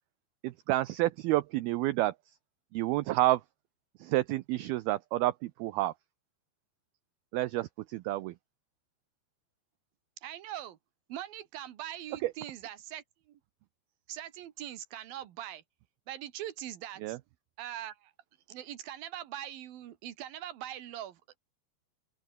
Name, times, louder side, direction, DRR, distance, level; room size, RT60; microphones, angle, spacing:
voice 1, 0.4-2.1 2.7-3.4 4.0-5.9 7.3-8.3 12.2-12.3 17.0-17.2, right 16 dB, 85° right, 2.2 m, -29 dB
voice 2, 10.2-10.8 11.1-13.4 14.1-15.6 16.1-17.2 17.6-18.1 18.5-21.4, right 12 dB, 60° right, 2.9 m, -42 dB
open air
omnidirectional pair, 5.3 m